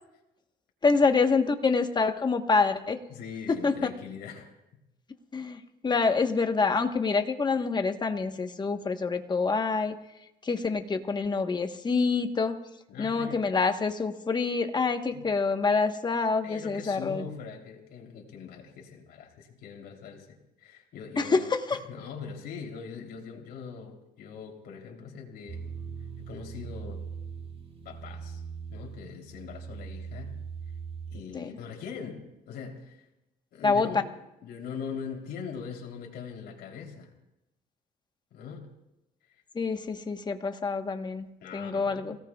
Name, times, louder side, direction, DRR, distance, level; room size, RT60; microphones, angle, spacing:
voice 1, 0.8-3.0 3.5-3.7 5.3-9.9 10.4-12.6 13.0-17.2 21.2-21.8 31.3-31.5 33.6-33.9 39.5-42.2, left 4 dB, 25° left, 6 dB, 1.2 m, -26 dB
voice 2, 3.1-4.5 12.9-13.4 15.1-15.3 16.4-25.6 26.2-27.0 27.8-28.4 28.7-30.3 31.1-33.0 33.5-34.1 34.4-37.1 38.3-38.7 39.3-39.4 41.4-42.1, left 6 dB, 70° left, 2 dB, 3.4 m, -41 dB
sound 1, 25.5-31.2, right 6 dB, 35° right, 1.8 m, -40 dB
28.5 x 17.5 x 2.4 m, 0.93 s
cardioid pair, 110°, 17 cm